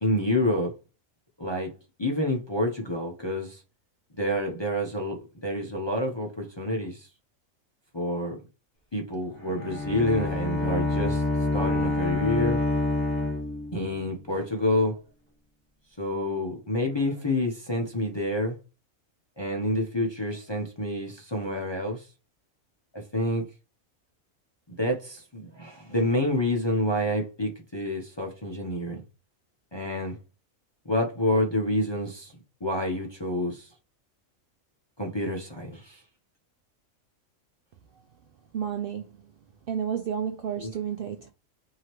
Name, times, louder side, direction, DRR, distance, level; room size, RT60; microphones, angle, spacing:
voice 1, 0.0-0.7 1.4-1.7 2.0-3.6 4.2-7.1 7.9-8.4 8.9-11.2 11.5-12.6 13.7-15.0 16.0-18.6 19.4-22.1 22.9-23.5 24.7-29.0 29.7-30.2 30.8-32.3 32.6-33.7 35.0-36.0 40.6-40.7, left 1 dB, 30° left, 0.5 m, -28 dB
Bowed string instrument, 9.4-14.1, left 2 dB, 10° left, 1.5 m, -27 dB
voice 2, 38.5-39.1 39.7-41.3, right 8 dB, 65° right, 0.5 m, -31 dB
4.7 x 2.8 x 2.9 m
omnidirectional pair, 1.4 m